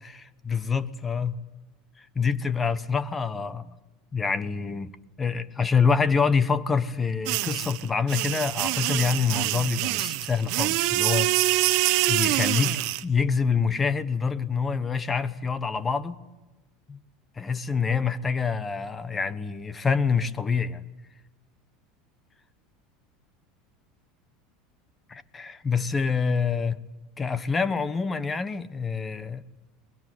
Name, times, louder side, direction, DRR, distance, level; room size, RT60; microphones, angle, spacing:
voice 1, 0.0-1.4 2.0-3.7 4.1-4.9 5.2-11.3 12.1-16.2 16.9-17.0 17.4-20.8 25.1-26.8 27.2-29.4, left 5 dB, 15° left, 1.1 m, -26 dB
sound 1, 7.3-13.0, right 17 dB, 60° right, 1.1 m, -25 dB
23.5 x 21.5 x 9.3 m
supercardioid pair, 140°, 0 cm